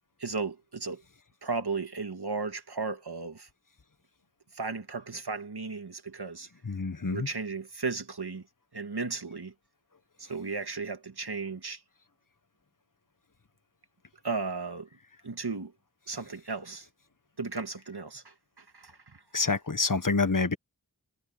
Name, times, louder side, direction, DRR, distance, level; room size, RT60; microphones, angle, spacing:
voice 1, 0.2-1.0 1.4-3.5 4.6-6.5 7.1-8.4 8.7-9.5 10.2-11.8 14.2-14.9 15.2-15.7 16.1-16.9 17.4-18.2 18.7-18.9, right 4 dB, 75° right, 1.9 m, -35 dB
voice 2, 6.6-7.3 19.3-20.6, left 3 dB, 50° left, 1.4 m, -27 dB
wide cardioid pair, 40°, 40 cm